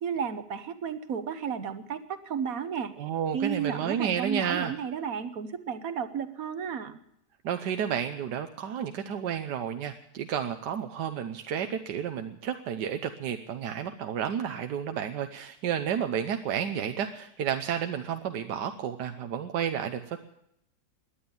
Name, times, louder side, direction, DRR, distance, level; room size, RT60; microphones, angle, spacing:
voice 1, 0.0-2.9 3.3-7.0, right 7 dB, 60° right, 10 dB, 1.5 m, -33 dB
voice 2, 3.0-4.7 7.4-20.2, right 8 dB, 85° right, 7 dB, 1.5 m, -31 dB
18.5 x 11.0 x 7.1 m, 0.76 s
omnidirectional pair, 1.8 m